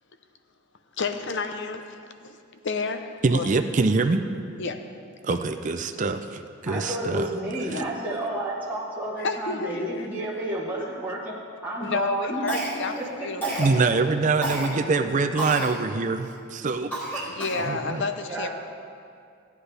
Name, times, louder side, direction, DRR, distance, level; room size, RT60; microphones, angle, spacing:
voice 1, 1.0-2.0 2.2-2.4 2.6-3.5 4.6-4.8 5.3-5.4 6.7-6.8 7.7-7.9 9.2-9.9 11.8-13.9 17.3-18.5, left 4 dB, 55° left, 7 dB, 0.7 m, -30 dB
voice 2, 3.2-4.3 5.2-7.3 7.7-7.8 13.6-18.0, right 3 dB, 35° right, 7 dB, 0.4 m, -25 dB
voice 3, 6.7-12.5 13.0-13.6 13.9-14.0 18.3-18.5, right 1 dB, 10° right, -7 dB, 1.3 m, -31 dB
Cough, 12.5-13.0 13.4-13.8 14.4-14.7 15.4-15.7 16.2-16.3 16.9-17.7, right 2 dB, 10° left, 2.2 m, -30 dB
16.0 x 9.6 x 3.4 m, 2.4 s
head